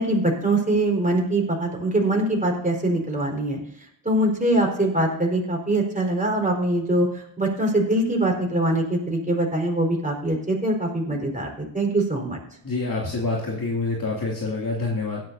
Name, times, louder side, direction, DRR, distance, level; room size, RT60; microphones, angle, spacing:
voice 1, 0.0-3.6 4.0-12.4, right 1 dB, 15° right, 0 dB, 4.4 m, -23 dB
voice 2, 12.6-15.2, left 3 dB, 40° left, -3 dB, 2.7 m, -27 dB
17.0 x 10.5 x 2.8 m, 0.72 s
supercardioid pair, 45°, 49 cm